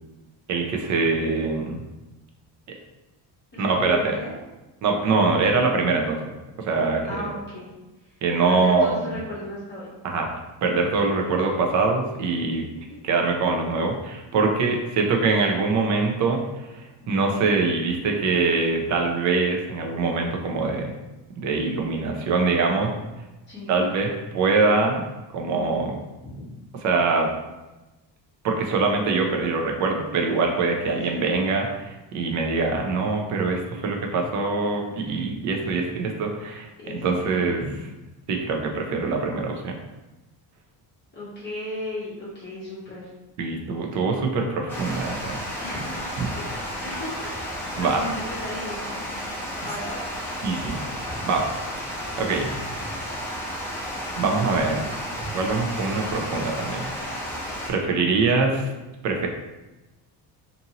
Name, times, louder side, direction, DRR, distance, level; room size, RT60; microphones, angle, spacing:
voice 1, 0.5-1.8 3.6-4.1 4.8-6.3 6.6-7.3 8.2-9.1 10.0-10.3 10.6-12.6 13.0-16.4 17.1-20.9 21.4-22.9 23.7-25.0 25.3-26.0 26.8-27.3 28.4-37.6 38.3-39.7 43.4-45.4 47.8-48.0 50.4-50.8 51.3-51.4 52.2-52.5 54.2-54.8 55.3-56.9 57.7-58.7 59.0-59.3, right 3 dB, 45° right, 2 dB, 0.5 m, -23 dB
voice 2, 3.5-4.3 7.0-7.7 8.0-8.2 8.5-9.9 11.2-11.6 12.9-13.0 23.5-23.8 26.2-26.4 30.8-31.2 35.6-35.9 36.8-37.7 41.1-43.1 43.7-44.0 45.6-47.3 47.6-49.1 49.6-50.1 57.8-58.1, left 1 dB, 25° left, -9 dB, 0.8 m, -36 dB
Water, 44.7-57.7, equal, 5° left, 0.5 m, -32 dB
2.6 x 2.6 x 2.8 m, 1.1 s
cardioid pair, 145°, 41 cm